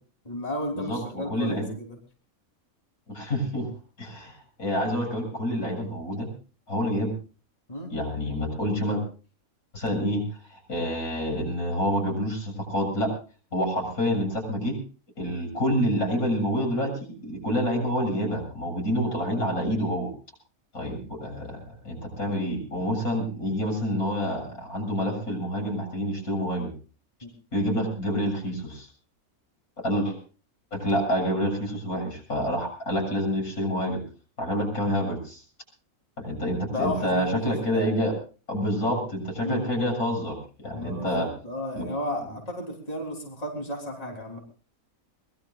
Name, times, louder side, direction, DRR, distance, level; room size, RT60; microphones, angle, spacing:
voice 1, 0.3-1.9 7.7-7.9 27.2-27.3 36.7-37.9 39.4-39.7 40.7-44.4, left 1 dB, 25° left, 0 dB, 3.6 m, -33 dB
voice 2, 0.8-1.7 3.1-3.7 4.0-6.3 6.7-7.1 7.9-9.0 9.7-10.2 10.5-13.1 13.5-14.7 15.2-20.1 20.7-26.7 27.5-28.9 29.8-30.2 30.7-34.0 34.4-35.4 36.2-38.1 38.5-41.3 41.7-41.9, equal, 80° left, 1 dB, 7.8 m, -27 dB
24.0 x 21.5 x 2.4 m, 0.36 s
omnidirectional pair, 1.5 m